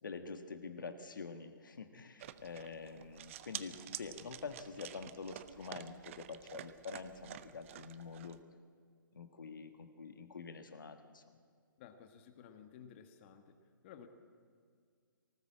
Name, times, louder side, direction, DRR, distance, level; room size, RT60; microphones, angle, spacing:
voice 1, 0.0-8.4 9.1-11.2, left 4 dB, 65° left, 8 dB, 1.5 m, -46 dB
sound 1, 2.2-8.4, right 12 dB, 35° right, 0.8 m, -49 dB
voice 2, 11.8-13.6 13.8-14.1, left 8 dB, 35° left, 7 dB, 1.6 m, -55 dB
19.0 x 18.5 x 7.5 m, 2.1 s
figure-of-eight pair, 135°, 11 cm